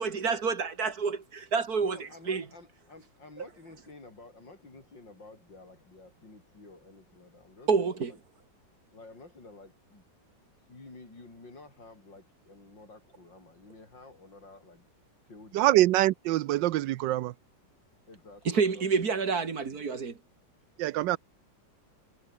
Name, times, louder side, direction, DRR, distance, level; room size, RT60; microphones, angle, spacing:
voice 1, 0.0-2.4 3.4-3.5 7.7-8.1 18.5-20.2, right 5 dB, 55° right, 2.5 m, -28 dB
voice 2, 1.8-8.2 8.9-10.0 10.7-14.9 15.3-15.8 18.1-19.6, left 3 dB, 75° left, 6.4 m, -51 dB
voice 3, 15.5-17.3 20.8-21.2, right 15 dB, 80° right, 1.3 m, -24 dB
omnidirectional pair, 2.0 m